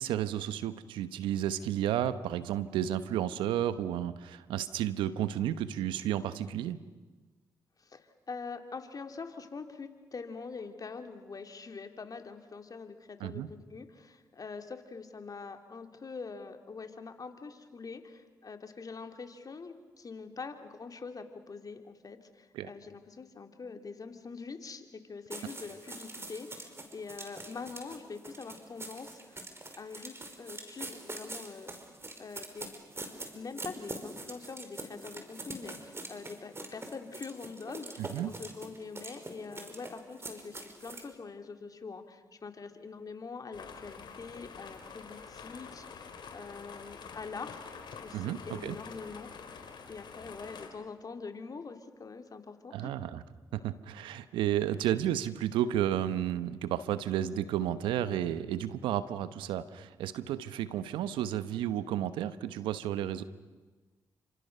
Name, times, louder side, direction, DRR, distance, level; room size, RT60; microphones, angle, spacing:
voice 1, 0.0-6.8 13.2-13.5 22.5-22.7 38.0-38.3 48.1-48.7 52.7-53.2 53.5-63.2, right 11 dB, 85° right, 13 dB, 1.0 m, -32 dB
voice 2, 7.8-29.4 29.7-31.7 32.2-32.7 33.3-47.6 48.0-49.3 49.9-52.9, left 4 dB, 50° left, 6 dB, 3.1 m, -44 dB
sound 1, 25.3-41.1, right 2 dB, 30° right, 5.4 m, -44 dB
sound 2, 43.5-50.7, left 5 dB, 65° left, 4.0 m, -47 dB
30.0 x 26.5 x 6.8 m, 1.3 s
supercardioid pair, 45°, 8 cm